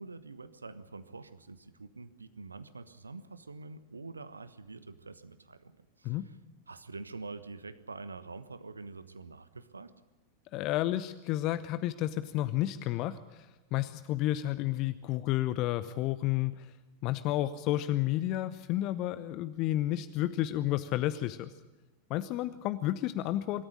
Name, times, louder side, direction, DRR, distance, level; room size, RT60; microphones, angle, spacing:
voice 1, 0.0-6.4 6.7-9.9, right 3 dB, 80° right, 14 dB, 1.2 m, -46 dB
voice 2, 10.5-16.7 17.0-21.5 22.1-23.6, left 14 dB, 40° left, 13 dB, 0.8 m, -31 dB
24.5 x 13.5 x 9.9 m, 1.2 s
figure-of-eight pair, 90°, 0 cm